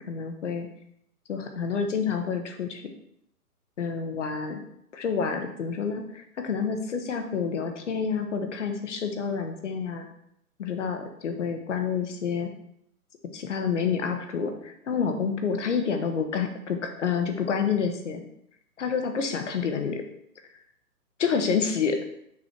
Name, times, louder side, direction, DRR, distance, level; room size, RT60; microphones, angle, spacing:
voice 1, 0.1-0.7 1.3-2.8 3.8-4.6 4.9-10.1 10.6-12.5 13.3-18.2 18.8-20.0 21.2-22.0, left 6 dB, 50° left, 5 dB, 1.1 m, -28 dB
6.2 x 4.9 x 4.5 m, 0.74 s
hypercardioid pair, 155°, 47 cm